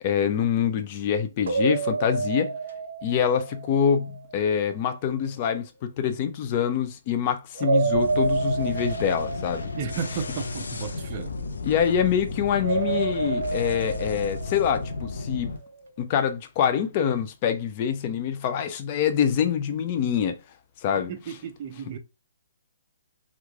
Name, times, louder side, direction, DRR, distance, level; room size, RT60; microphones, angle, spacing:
voice 1, 0.0-2.5 3.0-9.7 11.6-15.5 16.0-20.4 20.8-21.1, left 8 dB, 35° left, 0.5 m, -25 dB
sound 1, 1.5-4.4 7.5-10.9 12.6-15.3, right 4 dB, 70° right, 0.7 m, -29 dB
sound 2, 7.9-15.6, left 3 dB, 85° left, 0.7 m, -34 dB
voice 2, 9.8-11.3 21.0-22.0, right 7 dB, 35° right, 0.6 m, -34 dB
3.1 x 2.4 x 3.5 m
hypercardioid pair, 155°, 0 cm